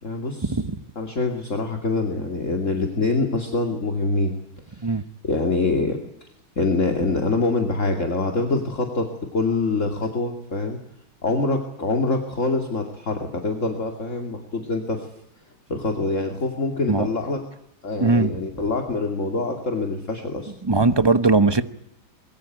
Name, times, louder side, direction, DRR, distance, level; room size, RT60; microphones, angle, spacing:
voice 1, 0.0-0.6 1.0-4.3 4.7-4.9 5.2-6.0 6.6-10.8 11.2-15.1 15.7-17.4 17.8-20.5, left 3 dB, 40° left, 4 dB, 2.9 m, -25 dB
voice 2, 20.6-21.6, right 3 dB, 25° right, 12 dB, 0.6 m, -19 dB
24.0 x 22.5 x 9.2 m, 0.78 s
omnidirectional pair, 2.1 m